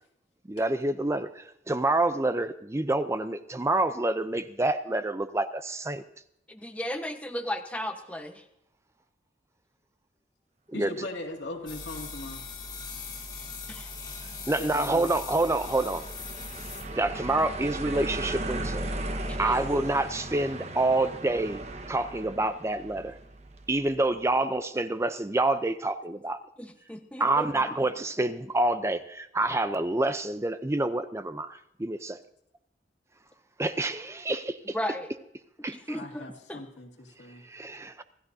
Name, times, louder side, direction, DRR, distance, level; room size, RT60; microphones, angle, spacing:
voice 1, 0.5-6.0 10.7-11.1 14.5-16.1 16.9-18.9 19.4-23.2 23.7-26.4 27.2-32.2 33.6-34.5 35.6-36.0 37.4-38.0, right 2 dB, 15° right, 0.5 m, -27 dB
voice 2, 6.5-8.4 13.7-13.9 19.3-19.6 26.6-27.8 34.7-35.1 35.7-36.6, equal, 10° left, 1.1 m, -35 dB
voice 3, 10.7-12.4 14.6-15.1 35.9-37.5, left 2 dB, 85° left, 2.3 m, -39 dB
sound 1, 11.7-17.3, left 4 dB, 25° left, 2.0 m, -40 dB
sound 2, 11.8-24.0, right 1 dB, 40° right, 1.2 m, -38 dB
26.0 x 14.0 x 2.7 m
head